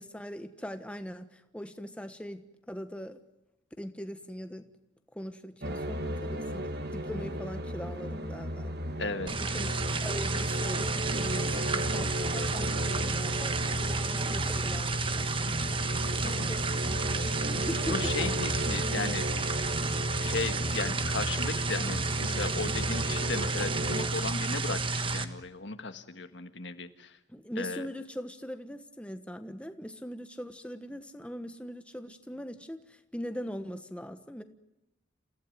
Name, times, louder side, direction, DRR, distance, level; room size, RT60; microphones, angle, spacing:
voice 1, 0.0-2.4 2.7-3.2 3.8-4.7 5.1-8.7 9.3-15.6 16.2-18.3 27.3-34.4, equal, 5° left, 8 dB, 1.2 m, -41 dB
sound 1, 5.6-24.1, equal, 55° right, 2.1 m, -35 dB
voice 2, 9.0-9.3 15.4-15.8 16.2-16.5 17.9-19.3 19.7-19.8 20.2-27.2 27.6-27.9, left 3 dB, 70° left, 9 dB, 1.6 m, -36 dB
sound 2, 9.3-25.2, right 3 dB, 25° right, 1.3 m, -31 dB
29.0 x 16.0 x 9.3 m, 0.91 s
head